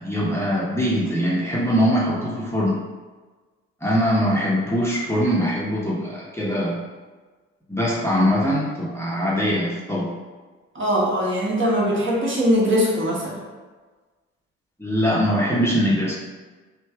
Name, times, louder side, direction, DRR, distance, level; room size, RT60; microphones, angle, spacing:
voice 1, 0.0-2.8 3.8-6.8 7.7-10.1 14.8-16.1, equal, 5° left, -6 dB, 0.9 m, -22 dB
voice 2, 10.7-13.4, equal, 35° right, -4 dB, 1.2 m, -21 dB
3.2 x 2.7 x 3.4 m, 1.3 s
hypercardioid pair, 45°, 37 cm